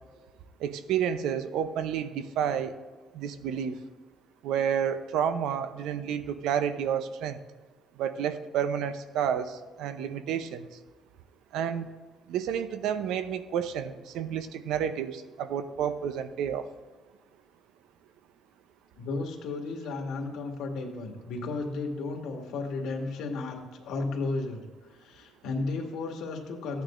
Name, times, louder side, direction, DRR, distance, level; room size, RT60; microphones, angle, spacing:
voice 1, 0.6-2.8 3.1-3.8 4.4-7.4 8.0-10.7 11.5-11.9 12.3-16.7, right 8 dB, 85° right, 11 dB, 0.7 m, -30 dB
voice 2, 19.0-24.6 25.0-26.8, left 3 dB, 80° left, 2 dB, 1.8 m, -34 dB
14.0 x 9.3 x 2.6 m, 1.3 s
cardioid pair, 140°, 0 cm